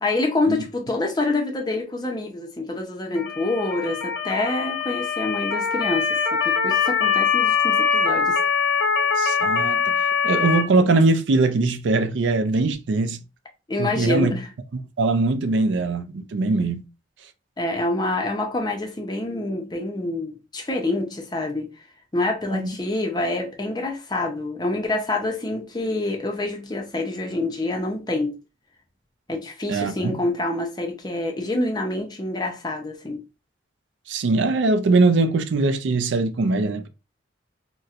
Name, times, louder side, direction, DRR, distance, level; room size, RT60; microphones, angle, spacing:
voice 1, 0.0-8.4 13.7-14.5 17.6-21.7 22.1-28.3 29.3-33.2, left 2 dB, 20° left, 0.5 m, -26 dB
Motor vehicle (road) / Siren, 3.2-10.6, left 6 dB, 70° left, 0.4 m, -22 dB
voice 2, 9.2-10.0 10.2-13.2 13.8-14.3 15.0-16.8 22.5-22.7 29.7-30.2 34.1-36.9, right 3 dB, 75° right, 0.4 m, -21 dB
4.1 x 2.1 x 2.4 m
head